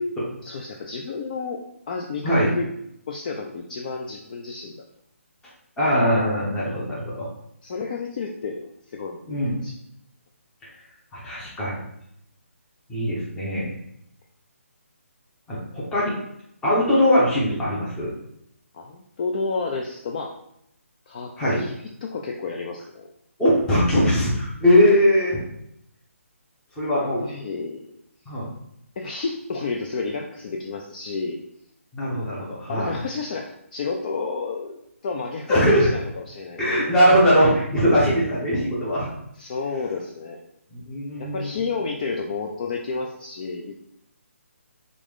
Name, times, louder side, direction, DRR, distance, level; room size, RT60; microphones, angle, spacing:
voice 1, 0.4-1.6 1.9-2.7 3.1-4.8 7.6-9.7 18.7-20.3 21.1-21.7 22.0-23.1 26.9-27.8 29.0-31.4 32.7-36.6 39.4-40.4 41.2-43.8, left 4 dB, 35° left, 1 dB, 0.3 m, -31 dB
voice 2, 5.8-7.3 9.3-9.6 11.1-11.8 12.9-13.7 15.5-16.1 16.6-18.1 21.4-21.6 23.4-25.4 26.8-27.2 28.3-28.5 31.9-32.9 35.5-35.9 36.6-39.1 40.7-41.5, equal, 10° left, -8 dB, 0.9 m, -20 dB
3.0 x 2.5 x 3.6 m, 0.75 s
figure-of-eight pair, 150°, 8 cm